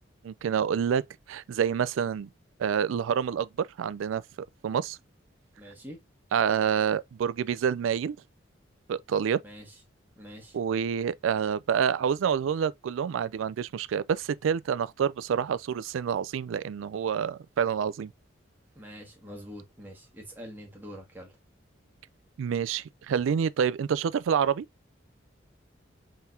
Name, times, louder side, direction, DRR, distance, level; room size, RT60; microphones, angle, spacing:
voice 1, 0.2-1.0 1.3-2.3 2.6-4.2 4.6-5.0 6.3-8.2 8.9-9.4 10.5-18.1 22.4-24.7, right 7 dB, 85° right, 0.3 m, -27 dB
voice 2, 5.6-6.0 9.4-9.7 10.2-10.6 18.7-21.3, equal, 10° right, 1.4 m, -45 dB
4.3 x 3.9 x 2.6 m
head